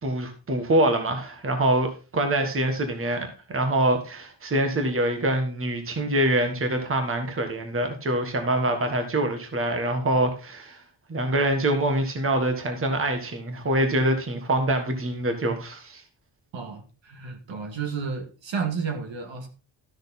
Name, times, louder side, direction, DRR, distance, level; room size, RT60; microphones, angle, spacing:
voice 1, 0.0-10.8 11.1-16.0, right 1 dB, 30° right, 6 dB, 1.5 m, -25 dB
voice 2, 16.5-19.5, right 5 dB, 80° right, 5 dB, 2.3 m, -32 dB
13.0 x 6.4 x 4.1 m, 0.33 s
wide cardioid pair, 175°, 44 cm